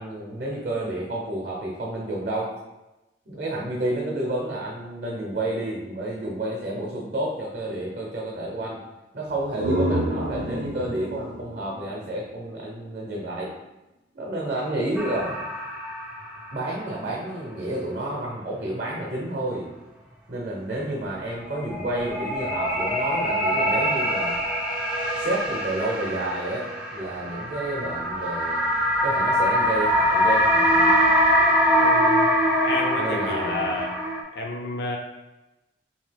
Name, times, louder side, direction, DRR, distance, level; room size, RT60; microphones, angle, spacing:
voice 1, 0.0-2.5 3.3-8.8 9.1-13.5 14.1-15.4 16.5-19.7 20.3-24.4 25.2-28.7 29.0-31.0 33.0-33.7, right 1 dB, 45° right, -3 dB, 0.6 m, -30 dB
sound 1, 9.3-12.9, right 1 dB, 85° right, 0.5 m, -29 dB
sound 2, 15.0-16.5 16.9-17.0 21.3-34.2, equal, 5° right, 0.4 m, -23 dB
voice 2, 31.8-32.3 32.6-34.0 34.3-35.0, left 2 dB, 65° left, 1 dB, 0.4 m, -30 dB
2.8 x 2.7 x 3.3 m, 0.99 s
head